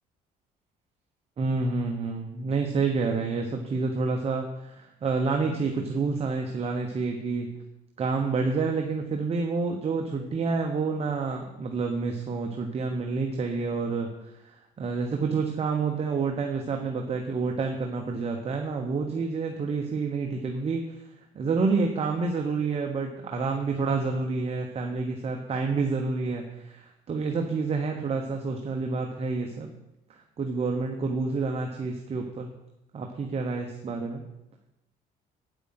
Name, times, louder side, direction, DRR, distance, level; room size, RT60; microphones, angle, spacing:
voice 1, 1.4-7.6 8.0-21.1 21.3-29.8 30.1-32.5 32.9-34.2, right 4 dB, 35° right, 3 dB, 1.1 m, -28 dB
8.9 x 8.1 x 5.7 m, 0.91 s
cardioid pair, 110°, 17 cm